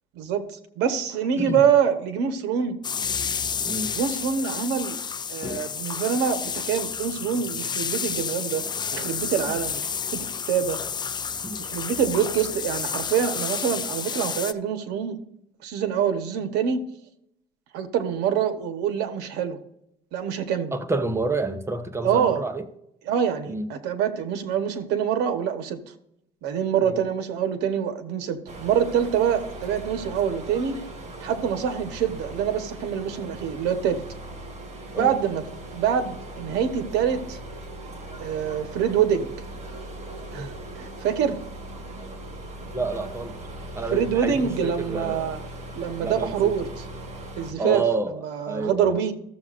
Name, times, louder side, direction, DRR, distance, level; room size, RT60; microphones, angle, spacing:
voice 1, 0.2-2.8 3.9-5.0 5.3-8.7 8.9-9.9 10.1-10.8 11.6-15.2 15.6-16.8 17.7-19.6 20.1-20.7 22.0-22.4 23.1-25.8 26.4-30.8 31.2-34.0 35.0-35.4 35.7-37.4 38.2-39.3 40.3-41.4 43.9-45.4 45.7-46.7 47.4-47.8 48.2-49.1, right 8 dB, 90° right, 9 dB, 1.2 m, -25 dB
sound 1, 2.8-14.5, left 6 dB, 25° left, 0.4 m, -30 dB
voice 2, 20.7-22.7 23.5-23.7 26.8-27.1 34.9-35.2 40.3-40.5 42.7-43.4 43.8-45.4 46.0-46.5 47.6-49.0, right 3 dB, 15° right, 9 dB, 1.0 m, -29 dB
sound 2, 28.5-47.5, right 1 dB, 40° right, 2.1 m, -39 dB
15.0 x 7.2 x 2.5 m, 0.78 s
cardioid pair, 110°, 17 cm